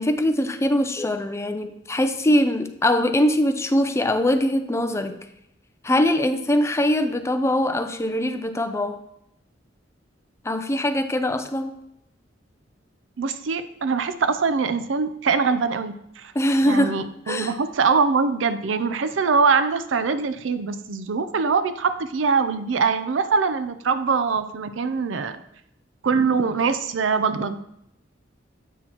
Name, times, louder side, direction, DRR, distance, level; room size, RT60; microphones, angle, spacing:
voice 1, 0.0-5.2 5.8-9.0 10.4-11.7 16.3-17.0 17.3-17.5, left 1 dB, 15° left, 8 dB, 0.4 m, -22 dB
voice 2, 13.2-16.3 16.6-25.4 26.0-27.6, right 5 dB, 90° right, 11 dB, 0.5 m, -23 dB
8.0 x 6.1 x 2.9 m, 0.79 s
head